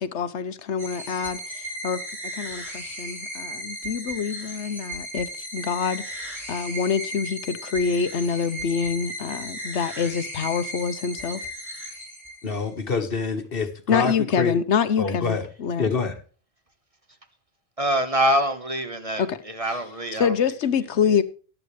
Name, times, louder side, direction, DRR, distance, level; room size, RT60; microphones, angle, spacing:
voice 1, 0.0-11.4 13.9-15.9 19.2-21.2, left 6 dB, 85° left, 1.2 m, -26 dB
sound 1, 0.8-12.7, equal, ahead, 4.9 m, -36 dB
voice 2, 12.4-14.1 14.4-14.5 15.0-15.5 15.8-16.1, left 4 dB, 55° left, 1.7 m, -26 dB
voice 3, 17.8-19.2 19.6-20.3, right 1 dB, 30° right, 1.4 m, -24 dB
14.0 x 11.0 x 3.2 m
omnidirectional pair, 1.1 m